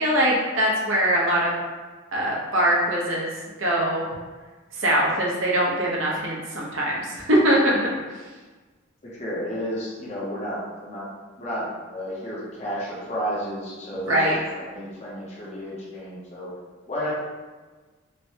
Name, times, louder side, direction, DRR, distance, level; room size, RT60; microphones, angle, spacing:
voice 1, 0.0-1.5 2.1-3.3 3.6-4.1 4.8-7.7 14.1-14.4, right 1 dB, 75° right, -4 dB, 0.7 m, -22 dB
voice 2, 9.0-11.1 11.4-16.5 16.9-17.1, equal, 35° left, -6 dB, 0.7 m, -32 dB
3.2 x 2.1 x 2.7 m, 1.3 s
head